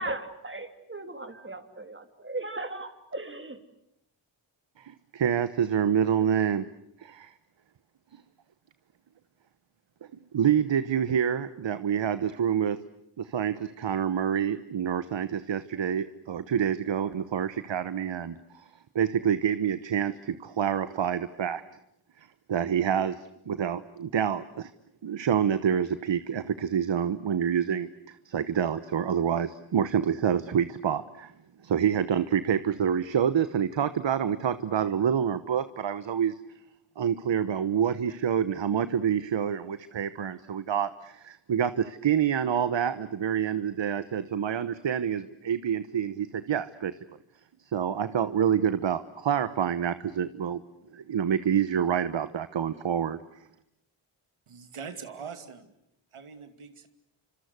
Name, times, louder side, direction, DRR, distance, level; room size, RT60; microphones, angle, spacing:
voice 1, 0.0-3.6, right 2 dB, 25° right, 8 dB, 3.1 m, -37 dB
voice 2, 4.8-6.6 7.0-7.3 10.3-12.8 13.2-18.6 18.9-21.6 22.2-24.7 25.0-31.3 31.6-36.3 37.0-46.9 47.7-50.6 50.9-53.2, right 8 dB, 60° right, 13 dB, 1.1 m, -27 dB
voice 3, 54.5-55.7 56.1-56.9, right 6 dB, 80° right, 8 dB, 2.6 m, -42 dB
27.0 x 26.0 x 8.1 m, 0.80 s
cardioid pair, 60°, 49 cm